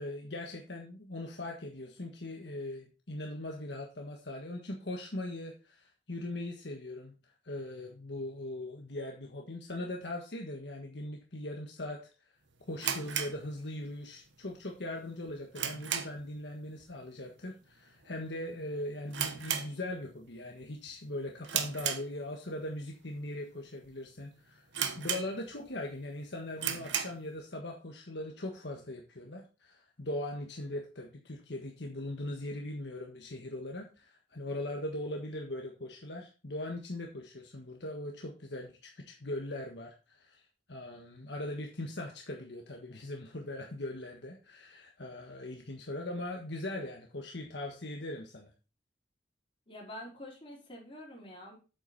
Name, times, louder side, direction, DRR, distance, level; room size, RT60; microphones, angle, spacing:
voice 1, 0.0-7.1 7.4-12.1 12.7-24.7 25.0-40.4 40.7-48.5, left 1 dB, 70° left, 1 dB, 1.5 m, -40 dB
sound 1, 12.8-14.1 14.4-14.5 15.0-16.4 16.7-17.0 17.2-17.3 18.0-18.3 18.6-18.7 19.1-20.3 20.6-20.9 21.4-22.6 23.1-23.2 23.8-23.9 24.2-24.3 24.7-25.7 26.1-26.2 26.5-27.3, right 8 dB, 90° right, 1.1 m, -35 dB
voice 2, 49.7-51.6, left 1 dB, 30° left, -3 dB, 4.4 m, -46 dB
8.3 x 7.8 x 4.1 m, 0.32 s
head